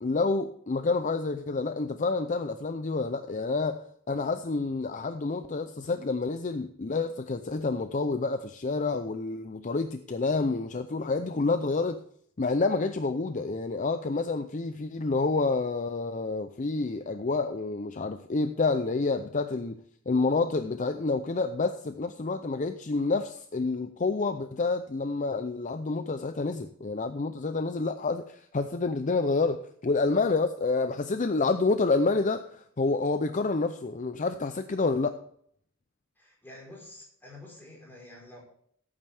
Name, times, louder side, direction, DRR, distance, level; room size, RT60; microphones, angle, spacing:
voice 1, 0.0-12.0 12.4-35.1, left 3 dB, 35° left, 0.5 m, -28 dB
voice 2, 36.2-38.4, left 2 dB, 10° left, 4.3 m, -48 dB
15.5 x 8.8 x 3.5 m
head